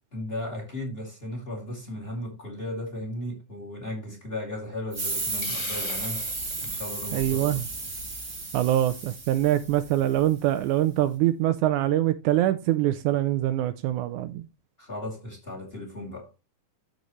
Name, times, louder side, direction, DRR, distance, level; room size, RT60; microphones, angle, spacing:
voice 1, 0.1-7.5 14.8-16.3, left 1 dB, 20° left, 2.4 m, -36 dB
sound 1, 4.9-10.2, right 3 dB, 25° right, 1.3 m, -33 dB
Hiss, 5.4-6.8, left 11 dB, 75° left, 1.4 m, -40 dB
voice 2, 7.1-7.7 8.5-14.4, right 13 dB, 80° right, 2.0 m, -24 dB
13.5 x 5.2 x 3.1 m
omnidirectional pair, 3.7 m